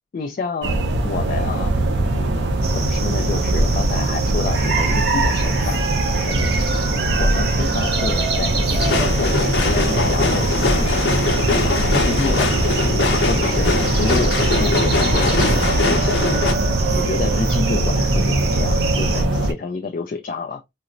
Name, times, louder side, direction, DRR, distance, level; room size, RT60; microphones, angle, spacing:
voice 1, 0.1-0.8 1.0-1.7 2.1-5.8 6.3-6.7 7.1-10.9 11.3-16.4 17.0-20.6, left 4 dB, 50° left, 0.3 m, -29 dB
sound 1, 0.6-19.5, right 1 dB, 80° right, 0.6 m, -21 dB
sound 2, 2.6-19.2, right 4 dB, 60° right, 0.9 m, -27 dB
sound 3, 8.8-16.5, left 3 dB, 85° left, 0.7 m, -22 dB
4.0 x 2.0 x 2.4 m
head